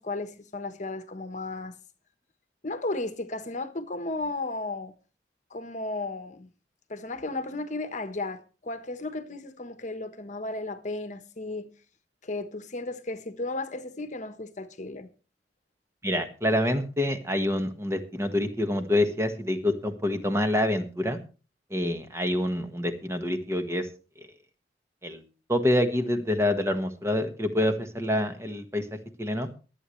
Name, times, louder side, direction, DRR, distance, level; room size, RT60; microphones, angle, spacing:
voice 1, 0.0-1.8 2.6-5.0 5.5-6.5 6.9-11.7 12.2-15.1, left 2 dB, 45° left, 1.2 m, -34 dB
voice 2, 16.0-21.2 21.7-23.9 25.0-25.2 25.5-28.8 29.2-29.5, left 1 dB, 15° right, 1.4 m, -26 dB
23.0 x 8.6 x 3.2 m
head